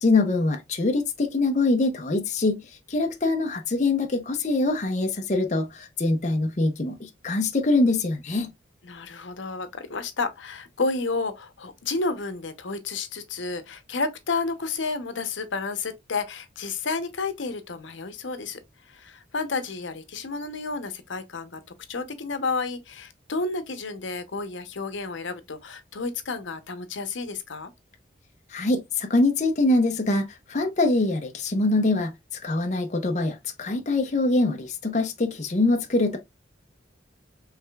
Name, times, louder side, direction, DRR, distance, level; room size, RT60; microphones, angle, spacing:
voice 1, 0.0-2.6 2.9-8.5 28.5-32.1 32.4-36.2, left 2 dB, 40° left, 0.6 m, -24 dB
voice 2, 8.8-18.6 18.9-21.6 21.9-27.7, left 3 dB, 85° left, 0.8 m, -31 dB
4.8 x 3.2 x 2.3 m
head